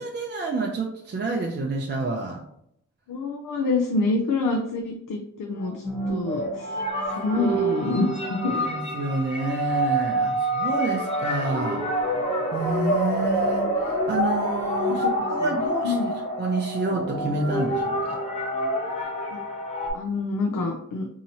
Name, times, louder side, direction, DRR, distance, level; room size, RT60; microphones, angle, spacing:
voice 1, 0.0-2.4 8.2-11.8 12.5-16.0 16.4-18.2, right 2 dB, 35° right, 0 dB, 0.4 m, -28 dB
voice 2, 3.1-6.8 7.1-8.6 14.9-15.5 15.8-16.1 19.3-19.4 19.9-21.1, left 3 dB, 80° left, 2 dB, 0.5 m, -27 dB
sound 1, 5.6-19.9, right 1 dB, 20° left, 0.7 m, -27 dB
4.2 x 2.8 x 2.7 m, 0.74 s
wide cardioid pair, 175°, 32 cm